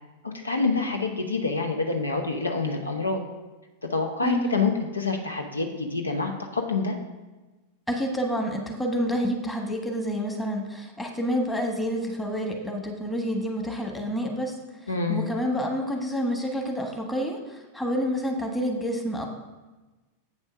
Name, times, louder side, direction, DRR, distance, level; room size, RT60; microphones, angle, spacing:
voice 1, 0.2-3.2 3.8-7.0 14.9-15.2, left 4 dB, 75° left, 4 dB, 0.9 m, -27 dB
voice 2, 4.2-4.6 7.9-14.5 15.1-19.3, equal, 5° left, 2 dB, 1.4 m, -28 dB
8.0 x 5.3 x 6.2 m, 1.2 s
figure-of-eight pair, 90°, 0 cm